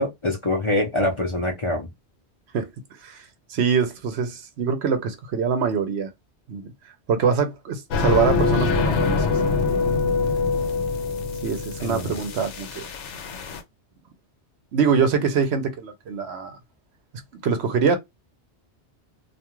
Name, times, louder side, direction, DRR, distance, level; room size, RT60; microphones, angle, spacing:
voice 1, 0.0-1.9 11.8-12.1, left 1 dB, 35° left, 0.6 m, -24 dB
voice 2, 3.5-6.1 6.5-6.7 7.1-9.3 11.4-12.8 14.7-16.5 17.4-18.0, right 6 dB, 70° right, 0.9 m, -24 dB
sound 1, 7.9-13.6, left 4 dB, 85° left, 0.9 m, -24 dB
2.5 x 2.3 x 2.9 m
omnidirectional pair, 1.2 m